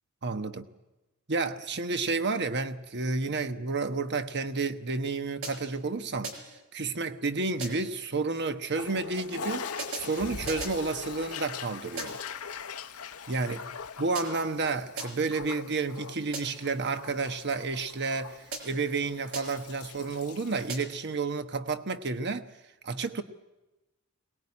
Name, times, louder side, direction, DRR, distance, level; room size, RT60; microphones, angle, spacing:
voice 1, 0.2-0.7 1.3-6.3 6.7-12.2 13.3-13.6 14.0-22.5 22.8-23.2, right 3 dB, 50° right, 1.2 m, -31 dB
sound 1, 5.4-5.9 6.2-6.7 7.6-8.0 9.8-10.9 12.0-12.4 14.2-14.6 15.0-15.4 16.3-16.8 18.5-18.9 19.3-19.8 20.7-21.1, right 4 dB, 70° right, 5.0 m, -40 dB
Toilet flush, 8.7-20.7, left 5 dB, 75° left, 1.0 m, -41 dB
23.0 x 19.5 x 9.8 m
head